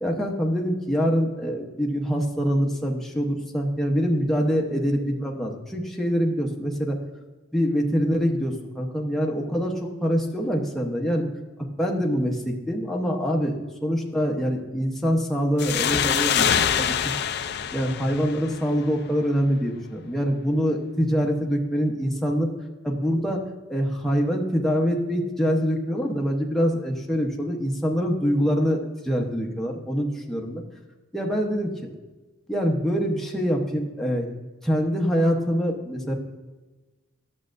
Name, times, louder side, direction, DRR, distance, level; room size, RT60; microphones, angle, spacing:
voice 1, 0.0-7.0 7.5-11.2 11.8-16.9 17.7-22.5 22.8-23.4 23.7-30.6 31.1-31.7 32.5-34.3 34.6-36.1, equal, ahead, -1 dB, 0.9 m, -25 dB
sound 1, 15.6-19.0, left 8 dB, 55° left, 0.4 m, -25 dB
11.5 x 7.4 x 2.6 m, 1.2 s
head